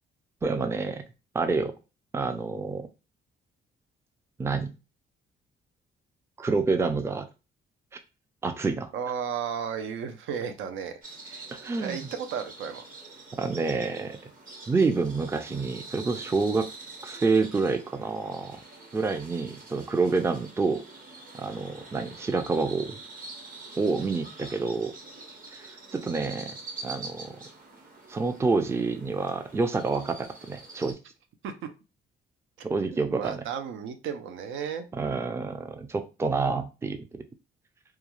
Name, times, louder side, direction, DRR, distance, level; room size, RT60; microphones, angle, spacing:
voice 1, 0.4-1.0 1.3-1.7 2.1-2.9 4.4-4.7 6.4-7.3 8.4-8.9 11.5-12.0 13.4-14.2 14.7-16.7 17.0-18.6 18.9-20.8 21.4-23.0 23.8-24.9 25.9-26.5 26.8-27.4 28.1-31.0 32.6-33.4 35.0-37.2, right 4 dB, 15° right, 7 dB, 0.3 m, -28 dB
voice 2, 8.9-11.5 11.8-12.8 31.4-31.7 32.9-34.9, right 7 dB, 80° right, 8 dB, 0.5 m, -34 dB
sound 1, 11.0-30.9, right 3 dB, 45° right, 1.0 m, -45 dB
2.3 x 2.3 x 2.9 m, 0.30 s
cardioid pair, 90°, 20 cm